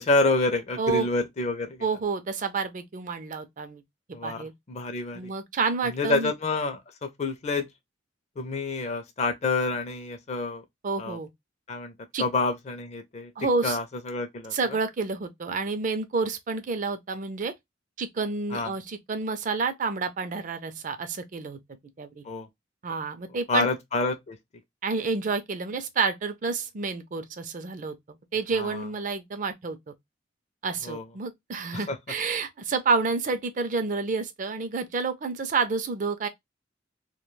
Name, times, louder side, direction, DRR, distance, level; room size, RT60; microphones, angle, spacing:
voice 1, 0.0-1.9 4.1-5.3 5.9-7.7 8.4-10.6 11.0-11.2 11.7-11.9 12.2-13.3 13.6-14.5 18.5-18.7 22.2-22.5 23.5-24.4 28.5-28.9 30.8-31.0 31.7-32.0, left 3 dB, 35° left, 0.4 m, -28 dB
voice 2, 1.8-3.8 4.1-4.5 5.1-6.3 10.8-11.3 12.1-12.2 13.4-13.8 14.5-17.5 18.0-21.6 22.0-22.2 22.8-23.7 24.8-28.0 28.3-29.9 30.6-36.3, right 4 dB, 45° right, 0.4 m, -29 dB
2.3 x 2.2 x 3.0 m
head